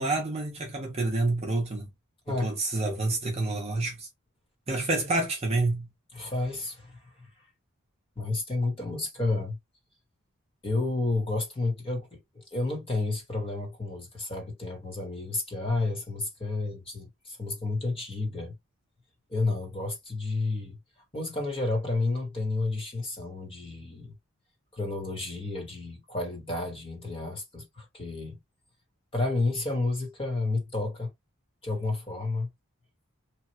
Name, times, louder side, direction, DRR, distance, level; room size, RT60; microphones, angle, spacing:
voice 1, 0.0-1.9 2.4-4.1 4.7-5.9, right 2 dB, 30° right, 0.8 m, -28 dB
voice 2, 6.1-7.3 8.2-9.6 10.6-18.6 19.3-20.8 21.1-24.1 24.7-28.4 29.1-31.1 31.6-32.5, left 2 dB, 25° left, 1.3 m, -31 dB
3.2 x 2.3 x 2.8 m
head